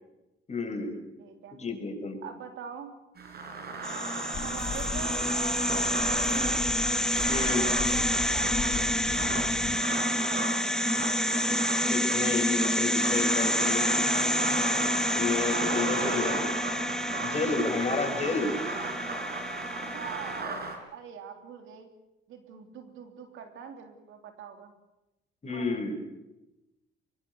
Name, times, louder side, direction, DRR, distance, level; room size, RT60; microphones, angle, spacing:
voice 1, 0.5-0.9 1.5-2.2 7.3-7.6 11.9-13.9 15.1-16.4 17.2-18.6 25.4-26.0, left 4 dB, 35° left, 4 dB, 6.3 m, -30 dB
voice 2, 1.2-1.5 2.2-2.9 4.4-6.7 7.4-9.6 10.0-10.7 15.3-16.4 18.0-18.4 19.9-20.6 20.9-21.9 22.3-24.7 25.5-25.8, right 7 dB, 85° right, 5 dB, 3.3 m, -43 dB
sound 1, 3.2-20.8, right 3 dB, 55° right, 5.3 m, -35 dB
sound 2, 3.8-20.4, left 1 dB, 5° left, 0.7 m, -28 dB
sound 3, 4.3-9.8, left 7 dB, 50° left, 1.5 m, -38 dB
23.0 x 23.0 x 7.1 m, 0.96 s
cardioid pair, 90°, 20 cm